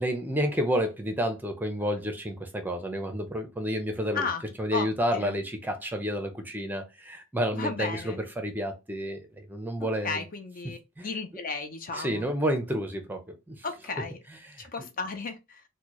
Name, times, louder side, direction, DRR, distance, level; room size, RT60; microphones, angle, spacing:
voice 1, 0.0-4.3 4.6-10.2 11.0-11.1 11.9-13.6, equal, 10° right, 0.6 m, -30 dB
voice 2, 7.5-8.2 9.8-12.3 13.6-14.2 14.6-15.6, left 4 dB, 40° left, 0.6 m, -34 dB
4.3 x 2.2 x 3.0 m
head